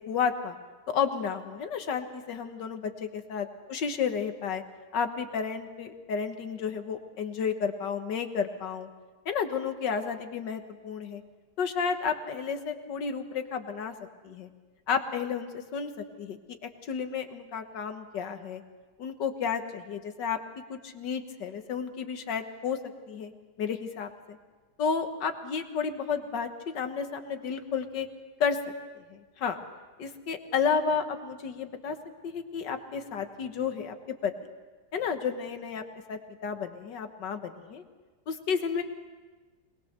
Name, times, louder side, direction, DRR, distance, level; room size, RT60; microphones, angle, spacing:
voice 1, 0.1-0.6 0.9-4.6 4.9-8.9 9.3-11.2 11.6-14.0 14.2-14.5 14.9-16.4 16.9-18.6 19.0-20.4 20.7-22.8 23.1-23.3 23.6-24.4 24.8-28.1 28.4-28.6 29.1-29.6 30.0-32.0 32.2-34.3 34.9-35.8 36.1-37.8 38.3-38.8, left 6 dB, 80° left, 7 dB, 1.9 m, -32 dB
22.0 x 20.5 x 6.7 m, 1.3 s
omnidirectional pair, 1.9 m